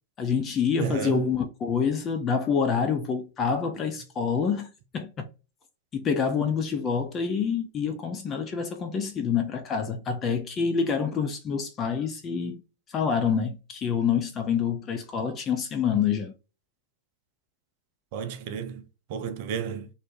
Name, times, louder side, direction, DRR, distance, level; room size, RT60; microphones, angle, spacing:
voice 1, 0.2-5.2 5.9-12.6 12.9-16.3, left 6 dB, 25° left, 0.4 m, -27 dB
voice 2, 0.8-1.3 18.1-18.8 19.1-19.9, right 7 dB, 50° right, 0.4 m, -32 dB
2.6 x 2.0 x 2.8 m
figure-of-eight pair, 90°, 0 cm